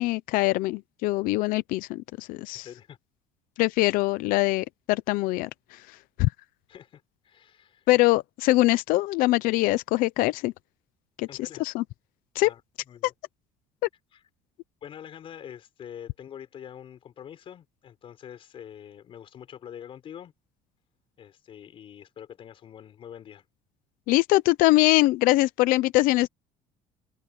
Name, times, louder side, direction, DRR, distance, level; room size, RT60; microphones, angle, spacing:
voice 1, 0.0-2.7 3.6-5.5 6.2-6.3 7.9-10.5 11.2-11.8 12.4-12.5 24.1-26.3, left 19 dB, 65° left, 0.7 m, -23 dB
voice 2, 2.5-3.0 6.7-7.9 11.3-11.6 12.4-12.6 12.9-13.1 14.1-14.2 14.8-20.3 21.2-23.4, left 9 dB, 35° left, 4.7 m, -45 dB
open air
cardioid pair, 170°, 15 cm